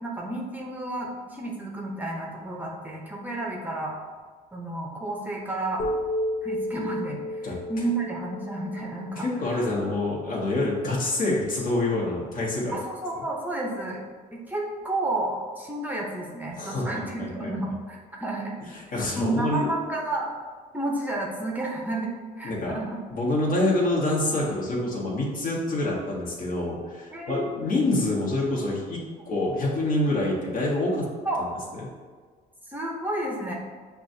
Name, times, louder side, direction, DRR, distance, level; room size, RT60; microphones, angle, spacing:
voice 1, 0.0-3.9 4.5-5.8 6.4-9.7 12.7-14.0 14.3-18.6 18.9-20.3 20.7-22.1 22.4-23.0 24.8-24.9 27.1-27.6 31.2-31.4 32.7-33.5, right 2 dB, 10° right, -2 dB, 0.6 m, -31 dB
sound 1, 5.8-9.9, left 1 dB, 90° left, 0.6 m, -32 dB
voice 2, 7.4-7.9 9.2-12.7 16.6-17.5 18.7-19.7 22.4-22.7 23.1-31.1 31.7-31.9, left 2 dB, 55° left, -4 dB, 1.3 m, -26 dB
6.6 x 2.3 x 2.7 m, 1.5 s
cardioid pair, 110°, 17 cm